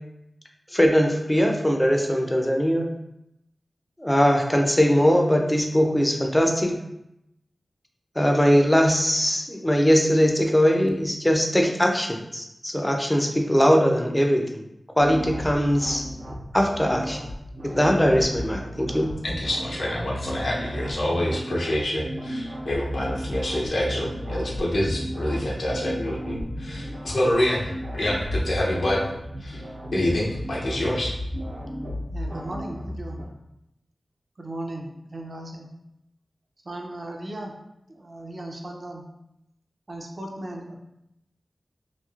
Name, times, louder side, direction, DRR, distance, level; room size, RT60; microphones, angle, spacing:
voice 1, 0.7-3.0 4.0-6.8 8.2-14.6 15.0-16.0 16.5-17.2 17.6-19.1, equal, 15° left, 2 dB, 0.4 m, -21 dB
sound 1, 15.0-33.2, equal, 80° right, 0.8 m, -34 dB
voice 2, 19.2-29.0 29.4-29.6 29.9-31.1, left 1 dB, 80° left, -3 dB, 0.7 m, -26 dB
voice 3, 32.1-33.2 34.4-35.7 36.6-37.6 37.9-39.0 39.9-40.8, right 1 dB, 50° right, 0 dB, 0.5 m, -36 dB
3.0 x 2.6 x 2.4 m, 0.84 s
wide cardioid pair, 80°, 0 cm